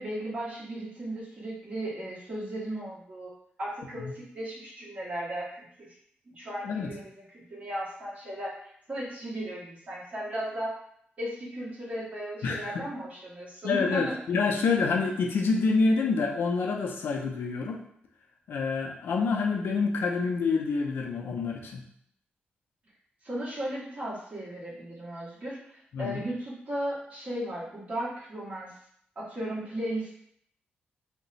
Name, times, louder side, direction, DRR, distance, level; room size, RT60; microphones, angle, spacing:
voice 1, 0.0-3.3 3.6-5.9 6.2-10.7 11.2-14.2 23.2-25.6 26.0-28.7 29.1-30.1, right 1 dB, 40° right, -7 dB, 1.4 m, -36 dB
voice 2, 12.4-12.9 13.6-17.8 18.5-21.8 25.9-26.2, left 4 dB, 75° left, 1 dB, 0.6 m, -27 dB
2.9 x 2.2 x 4.0 m, 0.68 s
wide cardioid pair, 120°, 4 cm